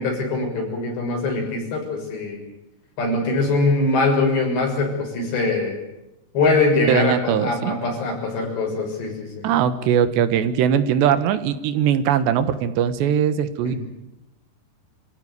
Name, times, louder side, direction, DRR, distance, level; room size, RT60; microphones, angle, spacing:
voice 1, 0.0-2.4 3.0-5.8 6.3-9.5 13.6-13.8, left 3 dB, 85° left, 0 dB, 8.8 m, -22 dB
voice 2, 6.9-7.7 9.4-13.8, right 9 dB, 85° right, 11 dB, 3.5 m, -20 dB
28.0 x 15.5 x 9.6 m, 0.97 s
omnidirectional pair, 4.9 m